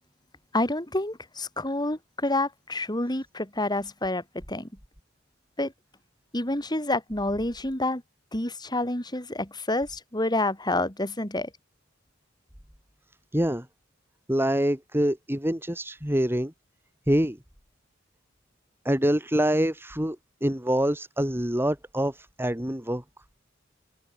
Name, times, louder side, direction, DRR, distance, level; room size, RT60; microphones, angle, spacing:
voice 1, 0.5-4.7 5.6-5.7 6.3-8.0 8.3-11.5, left 2 dB, 20° left, 5.4 m, -28 dB
voice 2, 13.3-13.7 14.3-16.5 17.1-17.4 18.8-23.0, equal, 10° right, 4.0 m, -25 dB
head